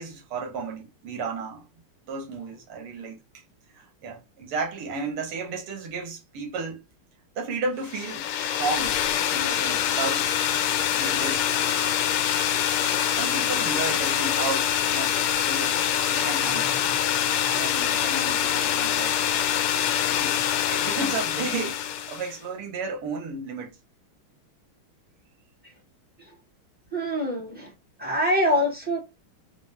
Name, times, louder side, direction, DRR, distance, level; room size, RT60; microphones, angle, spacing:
voice 1, 0.0-1.7 2.1-3.2 3.7-6.8 7.4-9.0 9.3-10.3 10.9-11.5 13.1-15.8 16.1-16.8 17.5-19.4 20.0-20.4 20.7-23.8, right 4 dB, 80° right, 2.0 m, -33 dB
sound 1, 7.9-22.3, left 10 dB, 90° left, 1.5 m, -25 dB
voice 2, 26.9-27.7 28.0-29.1, equal, 10° right, 0.5 m, -25 dB
5.0 x 2.0 x 3.1 m
omnidirectional pair, 2.4 m